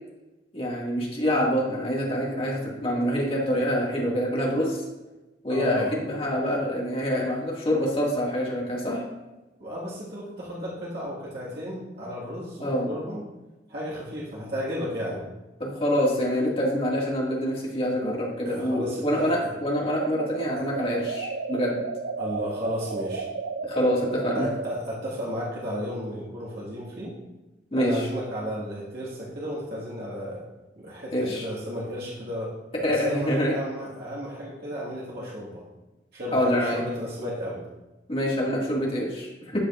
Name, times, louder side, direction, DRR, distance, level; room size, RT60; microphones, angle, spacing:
voice 1, 0.5-4.8 5.4-9.0 12.6-12.9 15.6-21.8 23.6-24.5 27.7-28.1 31.1-31.5 32.8-33.5 36.3-36.8 38.1-39.6, equal, 35° left, -4 dB, 2.0 m, -26 dB
voice 2, 5.5-5.9 9.6-13.2 13.7-15.3 18.4-19.3 20.6-20.7 22.2-23.3 24.3-27.2 27.7-30.4 30.8-32.5 32.9-35.7 36.1-37.6, equal, 65° right, -7 dB, 1.8 m, -33 dB
sound 1, 20.0-24.8, right 4 dB, 90° right, 0.5 m, -33 dB
13.0 x 5.0 x 2.5 m, 1.1 s
head